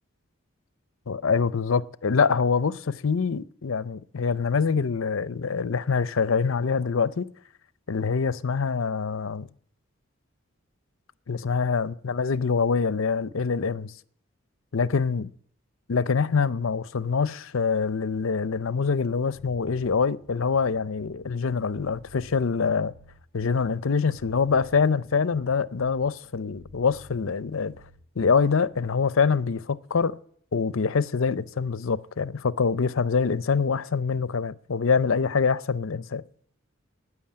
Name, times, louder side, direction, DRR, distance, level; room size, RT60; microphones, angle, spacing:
voice 1, 1.1-7.3 7.9-9.5 11.3-13.9 14.7-15.3 15.9-22.9 23.3-27.7 28.2-30.2 30.5-36.2, left 5 dB, 75° left, 0.6 m, -25 dB
sound 1, 20.2-28.9, left 1 dB, 40° right, 7.9 m, -52 dB
13.0 x 9.8 x 8.7 m
head